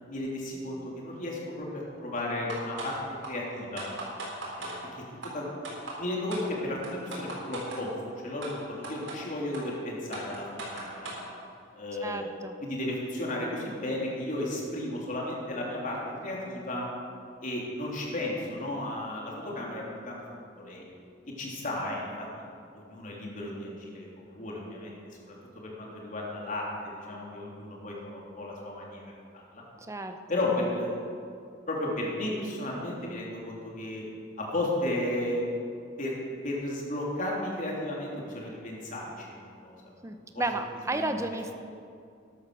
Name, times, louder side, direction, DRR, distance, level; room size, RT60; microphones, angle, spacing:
voice 1, 0.1-3.0 3.2-3.9 4.6-5.5 6.0-7.9 8.2-11.1 11.7-12.2 12.6-16.8 17.4-20.2 20.6-20.8 21.4-22.4 22.7-24.9 25.5-29.0 29.3-29.6 30.3-31.0 31.7-34.0 34.4-35.4 36.0-36.1 36.4-39.7 40.3-40.4 40.9-41.2, left 1 dB, 45° left, -3 dB, 3.2 m, -34 dB
sound 1, 2.5-2.9 3.2-3.3 3.8-4.8 5.2-5.3 5.6-6.0 6.3-6.4 6.8-7.8 8.4-8.5 8.8-9.2 9.5-9.6 10.1-11.2, right 2 dB, 80° right, 4.4 m, -38 dB
voice 2, 12.0-12.5 29.9-30.2 40.0-41.5, right 2 dB, 15° right, 7 dB, 0.8 m, -32 dB
13.0 x 11.5 x 6.4 m, 2.4 s
head